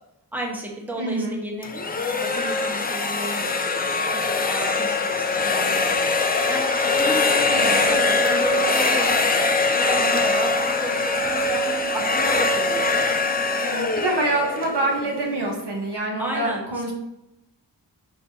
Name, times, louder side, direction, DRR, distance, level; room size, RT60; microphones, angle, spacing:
voice 1, 0.3-1.7 2.2-6.6 7.0-9.5 9.8-12.9 16.2-16.9, right 1 dB, 5° right, -2 dB, 1.1 m, -32 dB
voice 2, 1.0-1.4 7.5-7.8 13.6-16.9, right 2 dB, 70° right, -2 dB, 1.3 m, -26 dB
sound 1, 1.6-15.5, left 3 dB, 20° left, 0.5 m, -22 dB
5.2 x 3.2 x 2.8 m, 0.87 s
wide cardioid pair, 60°, 42 cm